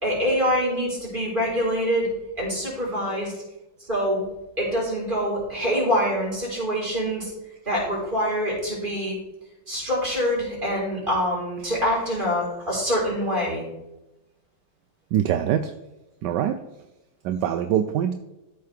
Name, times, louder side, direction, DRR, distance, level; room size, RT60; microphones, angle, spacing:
voice 1, 0.0-2.1 2.4-3.3 3.9-4.2 4.6-7.3 7.7-9.1 9.7-13.6, equal, 25° right, -5 dB, 4.3 m, -25 dB
voice 2, 15.1-15.6 16.2-16.6 17.2-18.1, right 10 dB, 75° right, 8 dB, 1.1 m, -23 dB
13.5 x 6.6 x 3.4 m, 0.96 s
omnidirectional pair, 2.2 m